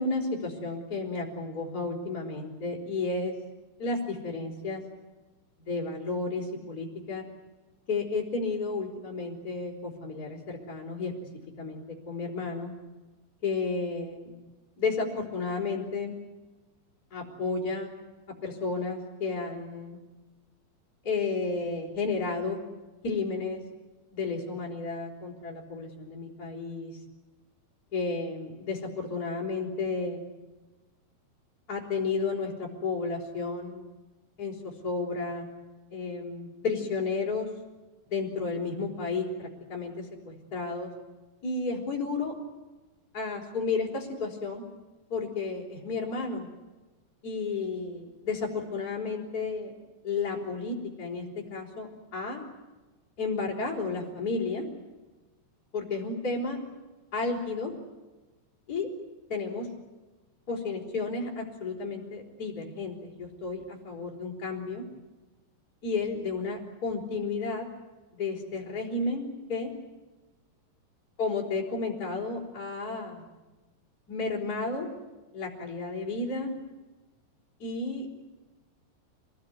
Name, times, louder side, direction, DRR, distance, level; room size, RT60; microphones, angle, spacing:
voice 1, 0.0-3.3 3.8-4.8 5.7-7.2 7.9-11.1 11.6-12.7 13.4-14.4 14.8-16.1 17.1-17.9 18.4-20.0 21.0-22.6 23.0-23.6 24.1-27.0 27.9-30.2 31.7-33.9 34.4-35.5 35.9-37.5 38.1-40.9 41.4-42.4 43.1-44.6 45.1-46.5 47.2-49.7 50.0-52.4 53.2-54.6 55.7-56.6 57.1-57.7 58.7-58.9 59.3-59.7 60.5-64.8 65.8-67.7 68.1-69.7 71.2-73.2 74.1-74.9 75.3-76.5 77.6-78.3, left 3 dB, 20° left, -2 dB, 4.6 m, -32 dB
28.0 x 19.5 x 9.6 m, 1.2 s
omnidirectional pair, 5.1 m